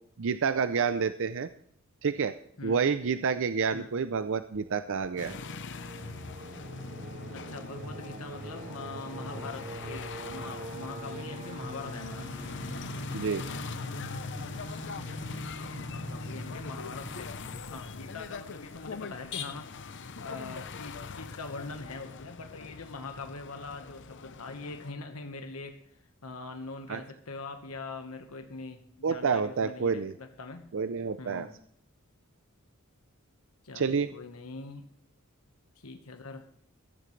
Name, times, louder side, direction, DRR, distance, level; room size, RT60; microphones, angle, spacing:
voice 1, 0.2-1.5 2.0-2.3 2.6-5.3 13.1-13.4 26.9-27.0 29.0-30.1 30.7-31.5 33.7-34.1, right 5 dB, 60° right, 12 dB, 0.5 m, -28 dB
voice 2, 2.6-2.9 3.7-4.0 7.3-12.3 15.1-17.3 17.7-19.7 20.2-30.7 31.2-31.6 33.6-34.9 35.8-36.4, left 3 dB, 85° left, 6 dB, 1.4 m, -43 dB
Singing, 4.5-19.3, right 2 dB, 35° right, 0.8 m, -44 dB
sound 1, 5.2-24.9, left 4 dB, 55° left, 0.8 m, -41 dB
15.5 x 14.5 x 3.3 m, 0.67 s
head